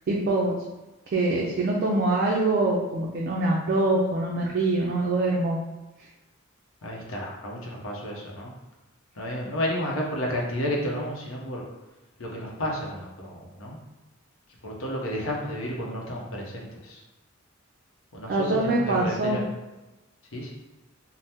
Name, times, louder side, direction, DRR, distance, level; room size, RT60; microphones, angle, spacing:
voice 1, 0.1-0.5 1.1-5.6 18.3-19.4, right 2 dB, 50° right, -2 dB, 0.4 m, -24 dB
voice 2, 6.8-8.5 9.1-11.6 12.2-13.8 14.6-17.0 18.1-19.5 20.3-20.5, equal, 90° left, -2 dB, 0.7 m, -31 dB
2.7 x 2.0 x 3.3 m, 1.0 s
head